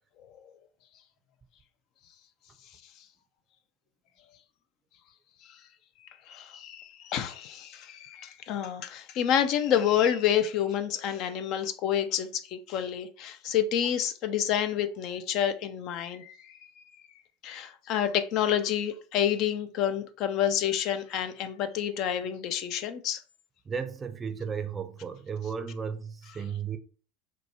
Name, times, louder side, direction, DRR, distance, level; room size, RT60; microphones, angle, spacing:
voice 1, 6.3-16.6 17.4-23.2, left 9 dB, 50° left, 0.3 m, -28 dB
voice 2, 23.7-26.8, right 6 dB, 25° right, 0.4 m, -34 dB
2.8 x 2.2 x 2.7 m
hypercardioid pair, 85°, 0 cm